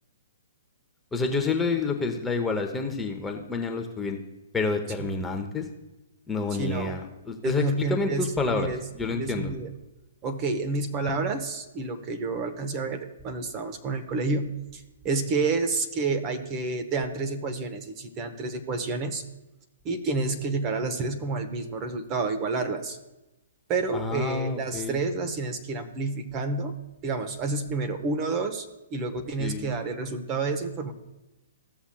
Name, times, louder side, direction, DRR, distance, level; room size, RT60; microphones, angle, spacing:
voice 1, 1.1-4.2 4.5-5.7 6.3-9.5 23.9-25.0 29.4-29.7, left 4 dB, 10° left, 3 dB, 0.8 m, -28 dB
voice 2, 6.6-7.0 7.4-8.8 9.1-9.7 10.2-19.2 19.8-23.0 23.7-26.7 27.0-30.9, right 3 dB, 30° right, 6 dB, 0.9 m, -29 dB
14.5 x 7.0 x 2.3 m, 0.99 s
hypercardioid pair, 130°, 0 cm